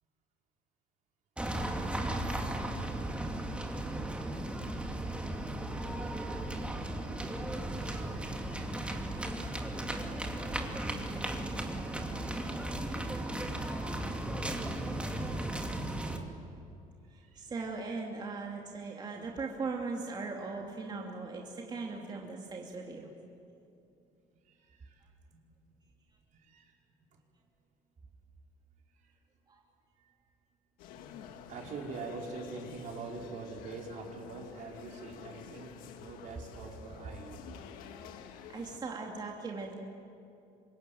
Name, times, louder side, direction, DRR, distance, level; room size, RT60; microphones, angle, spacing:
sound 1, 1.4-16.2, right 1 dB, 10° right, 2.6 m, -36 dB
voice 1, 7.8-8.2 17.1-17.5 24.4-25.1 26.3-26.8 29.0-29.1 31.5-37.4, right 4 dB, 60° right, 0 dB, 5.0 m, -44 dB
voice 2, 17.3-23.1 29.5-29.6 38.5-39.8, right 4 dB, 30° right, -1 dB, 2.8 m, -39 dB
sound 2, 30.8-38.8, left 8 dB, 85° left, 1.9 m, -49 dB
26.0 x 21.5 x 9.3 m, 2.6 s
cardioid pair, 120°, 14 cm